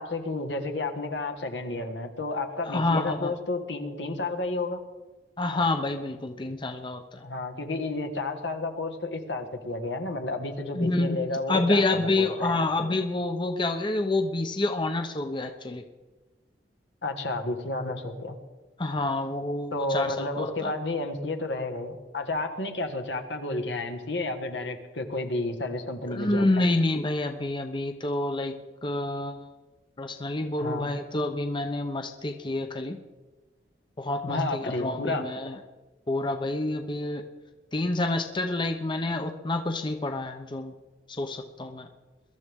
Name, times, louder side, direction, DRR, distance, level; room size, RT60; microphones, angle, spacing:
voice 1, 0.0-4.8 7.2-12.6 17.0-18.4 19.7-26.7 30.6-30.9 34.2-35.2, left 2 dB, 80° left, 5 dB, 1.6 m, -31 dB
voice 2, 2.7-3.3 5.4-7.2 10.8-15.8 18.8-20.7 26.1-29.5 30.0-33.0 34.0-35.5 36.1-37.2 37.7-40.7 41.1-41.9, left 2 dB, 25° left, 6 dB, 0.8 m, -28 dB
22.0 x 13.0 x 3.6 m, 1.2 s
head